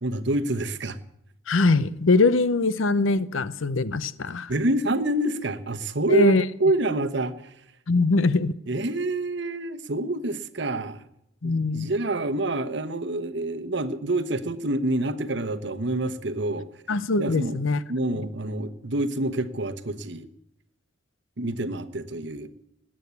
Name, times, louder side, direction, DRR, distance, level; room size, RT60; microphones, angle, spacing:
voice 1, 0.0-1.0 4.5-6.3 6.6-7.5 8.7-11.0 11.4-16.7 17.2-17.6 17.9-20.3 21.4-22.5, right 1 dB, 60° right, 1.0 m, -27 dB
voice 2, 1.5-4.5 6.1-6.4 7.9-8.5 11.4-11.9 16.9-17.8, left 3 dB, 80° left, 0.8 m, -22 dB
19.5 x 8.9 x 8.2 m
head